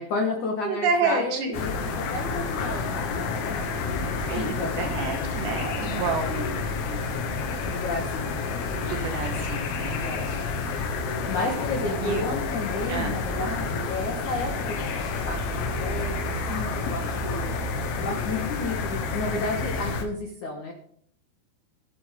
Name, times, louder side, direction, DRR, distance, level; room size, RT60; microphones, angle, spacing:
voice 1, 0.0-4.9 5.9-6.1 7.6-8.3 8.7-9.0 10.0-10.3 11.3-17.5 18.0-20.7, left 3 dB, 70° left, 1 dB, 1.8 m, -32 dB
voice 2, 0.6-1.6 4.3-7.0 8.9-10.0 12.0-12.2 12.9-13.2, right 4 dB, 65° right, 4 dB, 3.2 m, -29 dB
sound 1, 1.5-20.0, left 3 dB, 90° left, 4.2 m, -29 dB
22.5 x 7.9 x 3.7 m, 0.63 s
omnidirectional pair, 6.0 m